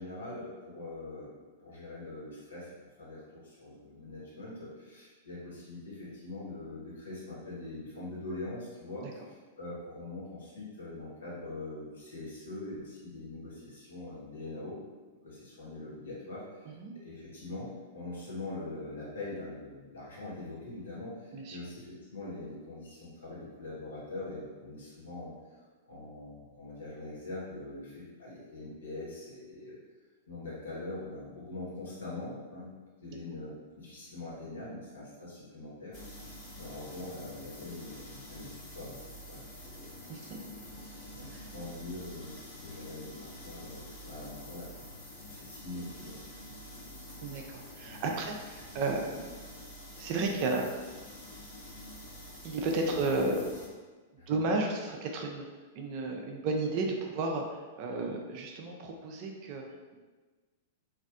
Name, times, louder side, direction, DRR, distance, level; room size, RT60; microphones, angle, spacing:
voice 1, 0.0-1.3 1.6-2.7 3.0-14.8 15.2-16.7 17.0-25.3 25.8-29.8 30.3-32.7 33.0-35.9 36.6-39.5 39.8-39.9 41.1-44.7 45.3-46.5 52.8-53.0 54.2-54.4, left 2 dB, 70° left, -7 dB, 1.3 m, -43 dB
sound 1, 35.9-53.7, left 1 dB, 35° left, 1.4 m, -47 dB
voice 2, 47.2-49.3 50.0-50.7 52.4-53.4 54.3-55.5 55.8-59.6 59.9-60.0, right 3 dB, 45° right, 2 dB, 0.4 m, -33 dB
3.1 x 2.5 x 2.5 m, 1.3 s
figure-of-eight pair, 100°, 0 cm